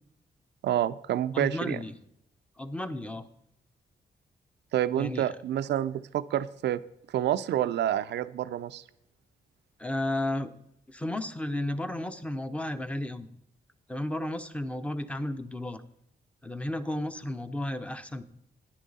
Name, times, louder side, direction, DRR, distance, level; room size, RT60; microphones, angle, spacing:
voice 1, 0.6-1.8 4.7-6.8 7.1-8.8, right 11 dB, 80° right, 14 dB, 0.5 m, -28 dB
voice 2, 1.3-1.9 2.6-3.3 5.0-5.3 9.8-10.5 10.9-13.3 13.9-15.8 16.4-18.2, left 1 dB, 5° left, 10 dB, 0.8 m, -33 dB
11.0 x 9.9 x 4.1 m, 0.77 s
cardioid pair, 85°, 18 cm